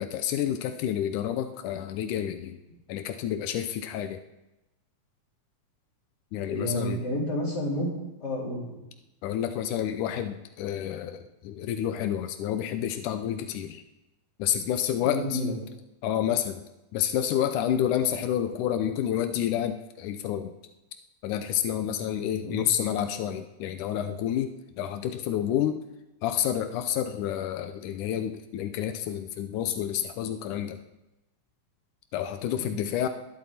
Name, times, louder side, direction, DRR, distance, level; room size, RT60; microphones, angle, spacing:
voice 1, 0.0-2.6 2.9-4.2 6.3-7.0 9.2-13.8 14.4-15.4 16.0-16.6 16.9-20.5 21.2-25.8 26.2-30.8 32.1-33.1, left 10 dB, 90° left, 8 dB, 2.3 m, -29 dB
voice 2, 6.5-7.9 8.2-8.8 15.1-15.5 22.4-22.6 32.6-32.7, left 1 dB, 30° left, -5 dB, 4.7 m, -30 dB
22.0 x 11.0 x 4.3 m, 0.95 s
omnidirectional pair, 3.5 m